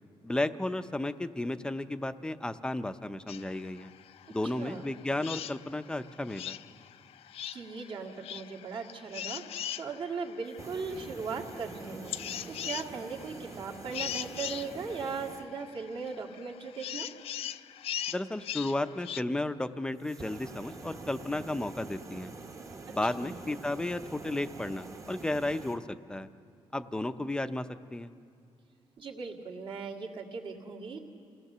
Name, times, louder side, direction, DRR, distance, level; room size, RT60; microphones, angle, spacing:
voice 1, 0.2-3.9 4.3-6.6 18.1-22.3 22.9-25.8 26.1-26.3 26.7-27.7 27.9-28.1, left 1 dB, 10° left, 10 dB, 0.5 m, -33 dB
sound 1, 3.3-19.2, left 10 dB, 70° left, 0.4 m, -41 dB
voice 2, 4.5-4.9 7.5-12.1 12.5-17.1 23.2-23.4 29.0-31.0, right 5 dB, 55° right, 0 dB, 2.0 m, -38 dB
sound 2, 10.5-15.5 20.0-25.8, right 3 dB, 30° right, 1.1 m, -46 dB
28.5 x 18.0 x 6.8 m, 2.4 s
wide cardioid pair, 170°, 10 cm